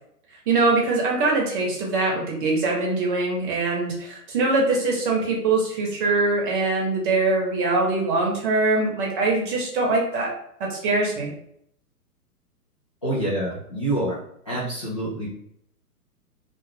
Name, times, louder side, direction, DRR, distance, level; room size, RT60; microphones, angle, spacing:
voice 1, 0.5-10.3 10.7-11.3, right 3 dB, 35° right, -1 dB, 0.9 m, -23 dB
voice 2, 13.0-14.2 14.5-15.3, right 1 dB, 25° left, -11 dB, 0.3 m, -26 dB
2.4 x 2.3 x 3.3 m, 0.71 s
hypercardioid pair, 125°, 47 cm